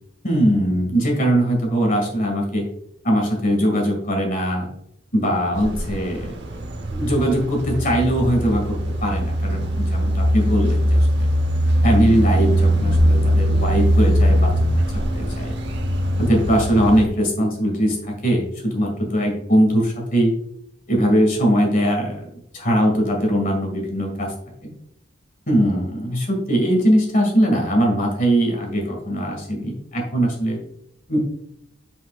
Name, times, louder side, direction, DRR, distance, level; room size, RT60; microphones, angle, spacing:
voice 1, 0.2-2.6 3.0-4.7 5.1-6.6 6.9-8.8 9.0-11.3 11.8-14.5 14.9-15.6 16.2-20.3 20.9-24.3 25.5-30.6 31.1-31.2, equal, 45° left, 0 dB, 2.1 m, -21 dB
sound 1, 5.5-17.1, equal, 60° right, 0.9 m, -20 dB
9.9 x 5.0 x 2.4 m, 0.80 s
head